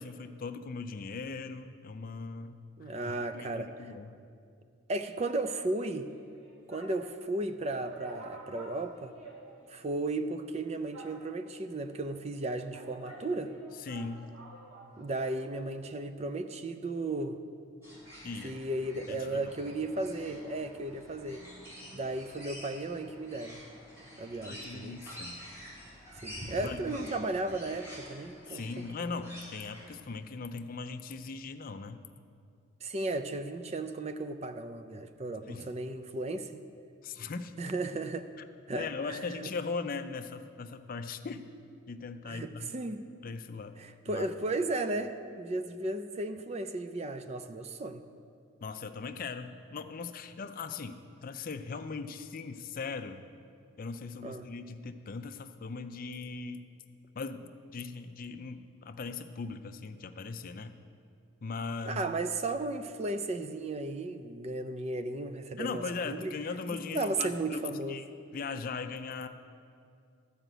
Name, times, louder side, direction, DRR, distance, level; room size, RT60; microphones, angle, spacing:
voice 1, 0.0-2.6 3.1-4.1 13.8-14.3 18.2-18.6 19.1-19.4 24.5-25.4 26.6-27.0 28.5-32.0 35.5-35.7 37.0-37.6 38.7-41.5 41.9-42.7 43.2-43.8 44.1-44.3 48.6-53.3 53.8-56.6 57.2-60.8 61.4-62.0 65.6-68.1 68.3-69.3, left 4 dB, 40° left, 9 dB, 0.4 m, -39 dB
voice 2, 2.8-3.7 4.9-6.1 6.7-9.1 9.7-13.5 15.0-17.4 18.4-21.4 21.9-23.6 24.2-25.0 26.2-29.2 32.8-36.6 37.6-38.3 38.7-39.5 42.3-43.1 43.8-48.0 54.2-54.5 61.9-66.3 66.9-68.1, right 2 dB, 30° right, 9 dB, 0.4 m, -35 dB
sound 1, 6.1-7.1 7.5-7.6 7.8-9.9 10.2-10.3 10.9-11.6 12.4-15.6 15.8-15.9, right 2 dB, 90° right, 2.0 m, -50 dB
sound 2, 17.8-30.0, equal, 15° right, 2.8 m, -48 dB
12.5 x 5.0 x 7.9 m, 2.4 s
head